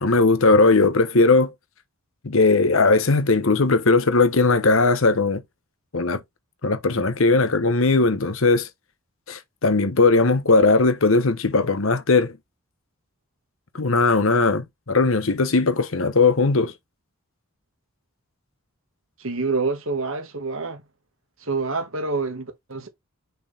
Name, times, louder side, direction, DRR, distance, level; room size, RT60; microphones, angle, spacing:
voice 1, 0.0-1.5 2.2-5.4 5.9-6.2 6.6-8.7 9.3-12.4 13.7-16.7, left 3 dB, 65° left, 1.0 m, -18 dB
voice 2, 19.2-20.8 21.4-22.9, right 3 dB, 65° right, 1.9 m, -27 dB
6.5 x 4.5 x 3.4 m
head